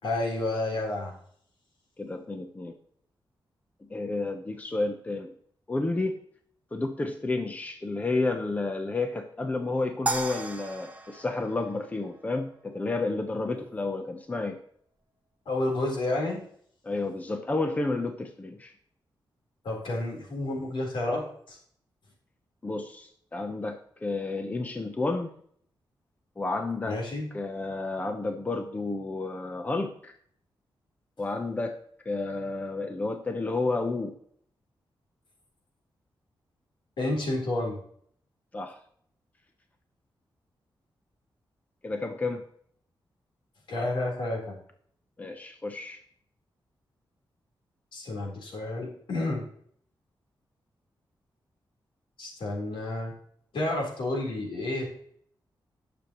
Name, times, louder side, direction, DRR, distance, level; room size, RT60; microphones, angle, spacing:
voice 1, 0.0-1.1 15.5-16.4 19.6-21.6 26.8-27.3 37.0-37.8 43.7-44.5 47.9-49.4 52.2-53.1 53.5-54.9, left 2 dB, 80° left, -1 dB, 3.8 m, -30 dB
voice 2, 2.0-2.7 3.9-5.3 5.7-6.2 6.7-14.6 16.8-18.7 22.6-25.3 26.4-27.0 27.3-30.1 31.2-31.8 32.0-34.2 38.5-38.7 41.8-42.4 45.2-46.0, left 3 dB, 20° left, 6 dB, 0.7 m, -31 dB
sound 1, 10.1-12.4, right 2 dB, 15° right, 0.9 m, -35 dB
19.5 x 6.8 x 3.0 m, 0.62 s
wide cardioid pair, 170°, 8 cm